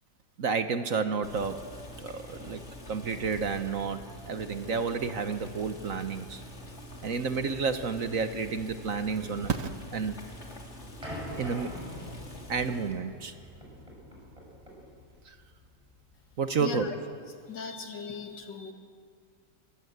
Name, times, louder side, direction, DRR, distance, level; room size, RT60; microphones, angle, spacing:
voice 1, 0.4-1.7 2.0-6.4 7.0-10.1 11.4-11.8 12.5-13.3 15.3-15.4 16.4-16.9, right 5 dB, 55° right, 9 dB, 1.3 m, -31 dB
Boiling, 1.2-13.0, equal, 40° left, 3.3 m, -46 dB
sound 1, 11.0-16.4, equal, 15° right, 6.2 m, -44 dB
voice 2, 16.6-16.9 17.5-18.7, left 5 dB, 80° left, 5 dB, 2.7 m, -38 dB
26.0 x 20.5 x 8.1 m, 2.2 s
omnidirectional pair, 1.9 m